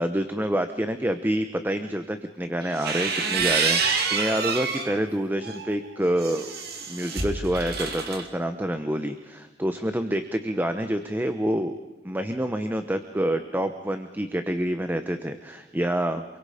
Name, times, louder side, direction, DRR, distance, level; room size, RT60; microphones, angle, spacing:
voice 1, 0.0-6.5 6.9-11.7 12.0-16.2, right 1 dB, 10° right, 8 dB, 1.0 m, -27 dB
sound 1, 2.6-4.9 5.4-8.2, right 5 dB, 55° right, 2.8 m, -27 dB
28.5 x 22.5 x 5.1 m, 1.1 s
head